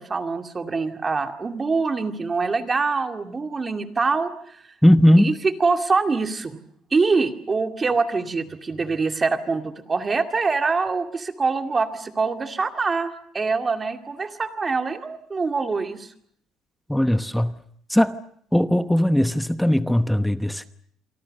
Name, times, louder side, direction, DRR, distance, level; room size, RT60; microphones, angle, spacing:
voice 1, 0.0-4.6 5.2-6.6 6.9-16.1, right 4 dB, 25° right, 2.2 m, -24 dB
voice 2, 4.8-5.3 16.9-17.5 17.9-18.1 18.5-20.7, equal, ahead, 1.0 m, -18 dB
27.5 x 24.0 x 6.6 m
cardioid pair, 130°, 0 cm